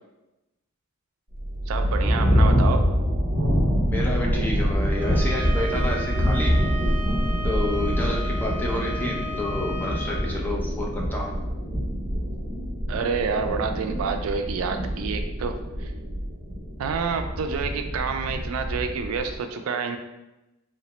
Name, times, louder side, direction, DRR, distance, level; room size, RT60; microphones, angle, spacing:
sound 1, 1.3-19.4, equal, 45° right, 0.7 m, -25 dB
voice 1, 1.7-2.8 12.9-15.5 15.8-15.9 16.8-20.0, right 5 dB, 85° right, 6 dB, 0.3 m, -28 dB
voice 2, 3.8-6.6 7.4-11.3, left 1 dB, 10° left, -2 dB, 0.4 m, -30 dB
Bowed string instrument, 4.9-10.3, equal, 5° right, 0.9 m, -36 dB
3.2 x 2.1 x 2.9 m, 0.97 s
head